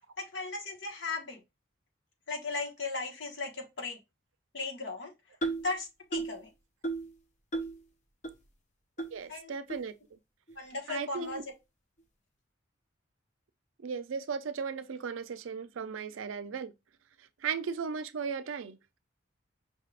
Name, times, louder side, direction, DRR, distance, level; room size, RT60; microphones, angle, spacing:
voice 1, 0.2-1.4 2.3-4.0 4.5-5.1 5.6-6.5 9.3-9.6 10.5-11.4, left 3 dB, 65° left, 1.2 m, -36 dB
sound 1, 5.4-5.7 6.1-6.4 6.8-7.1 7.5-7.8 8.2-8.3 9.0-9.1 9.7-9.8 10.5-10.6 11.2-11.4, right 3 dB, 35° left, 0.7 m, -34 dB
voice 2, 9.1-9.9 10.9-11.4 13.8-16.7 17.4-18.8, right 6 dB, 80° right, 0.4 m, -36 dB
5.3 x 2.4 x 3.3 m
head